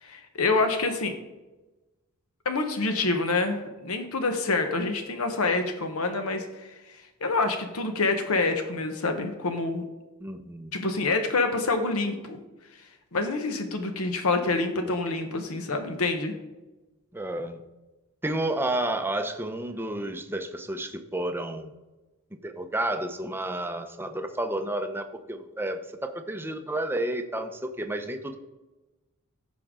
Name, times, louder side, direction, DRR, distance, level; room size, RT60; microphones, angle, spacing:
voice 1, 0.0-1.1 2.4-6.7 7.2-9.8 10.7-12.4 13.1-16.3, left 3 dB, 70° left, 6 dB, 1.0 m, -27 dB
voice 2, 10.2-10.8 17.1-17.6 18.2-21.7 22.4-28.4, right 1 dB, 10° right, 7 dB, 0.6 m, -31 dB
14.5 x 5.2 x 3.7 m, 1.1 s
head